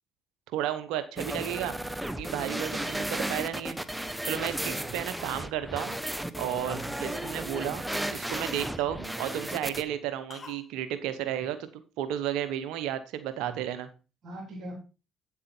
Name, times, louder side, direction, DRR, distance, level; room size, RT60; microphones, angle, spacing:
voice 1, 0.5-1.7 2.2-3.8 4.2-6.0 6.4-7.8 8.1-13.9, right 11 dB, 85° right, 11 dB, 0.9 m, -33 dB
sound 1, 1.2-9.8, right 1 dB, 10° right, 1.0 m, -34 dB
Cough, 5.6-6.2 6.5-6.8 7.1-8.9 10.3-10.7 10.9-11.0, left 5 dB, 40° left, 1.3 m, -49 dB
voice 2, 6.5-6.9 11.2-11.5 13.4-13.6 14.2-14.7, right 2 dB, 65° right, -1 dB, 3.5 m, -42 dB
9.1 x 7.3 x 4.4 m, 0.32 s
supercardioid pair, 60°, 0 cm